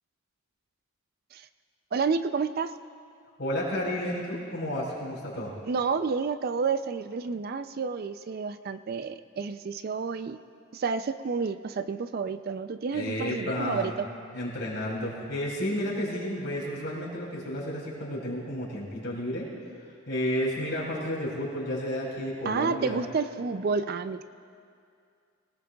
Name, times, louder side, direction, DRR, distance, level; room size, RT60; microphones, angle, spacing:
voice 1, 1.9-2.7 5.7-10.4 10.7-14.1 22.4-24.2, right 5 dB, 45° right, 11 dB, 0.3 m, -30 dB
voice 2, 3.4-5.5 12.9-13.9 14.3-19.4 20.1-23.0, equal, 55° left, -4 dB, 4.3 m, -31 dB
21.5 x 19.0 x 2.3 m, 2.4 s
head